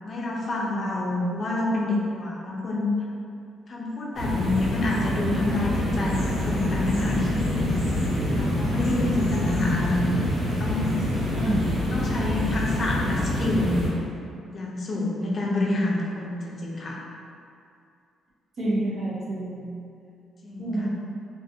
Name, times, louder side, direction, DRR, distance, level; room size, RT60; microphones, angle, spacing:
voice 1, 0.0-2.9 3.7-7.7 8.3-10.9 11.8-13.9 14.5-17.0 20.4-20.9, left 2 dB, 45° left, -3 dB, 0.5 m, -28 dB
sound 1, 4.1-13.9, left 1 dB, 85° right, 1.3 m, -26 dB
voice 2, 11.3-11.8 18.6-19.8 20.6-20.9, right 1 dB, 55° right, -7 dB, 0.8 m, -28 dB
2.5 x 2.4 x 2.6 m, 2.5 s
cardioid pair, 90°, 0 cm